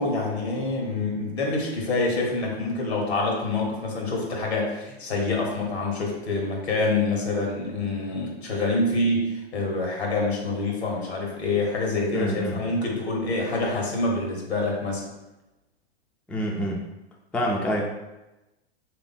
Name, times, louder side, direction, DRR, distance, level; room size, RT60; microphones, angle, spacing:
voice 1, 0.0-15.0, left 2 dB, 90° left, -1 dB, 1.4 m, -26 dB
voice 2, 12.1-12.6 16.3-16.8 17.3-17.8, equal, 5° left, -1 dB, 0.3 m, -26 dB
3.4 x 2.9 x 4.2 m, 1.0 s
hypercardioid pair, 115°, 31 cm